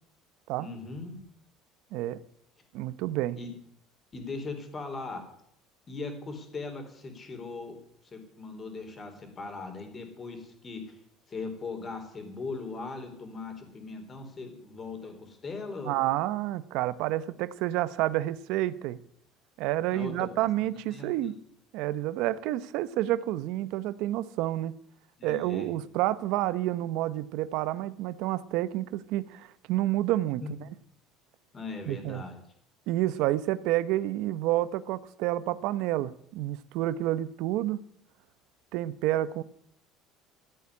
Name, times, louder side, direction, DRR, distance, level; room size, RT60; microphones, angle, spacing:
voice 1, 0.6-1.2 3.4-3.5 4.1-5.2 5.9-7.8 8.1-11.0 11.3-16.0 19.9-21.4 25.2-25.7 30.4-30.5 31.5-32.4, left 3 dB, 25° left, 3.8 m, -39 dB
voice 2, 2.7-3.4 15.8-19.0 19.6-21.4 21.7-24.8 25.2-30.4 31.9-32.3 32.9-37.8 38.7-39.4, right 15 dB, 65° right, 0.9 m, -29 dB
14.5 x 8.5 x 9.7 m
cardioid pair, 145°, 0 cm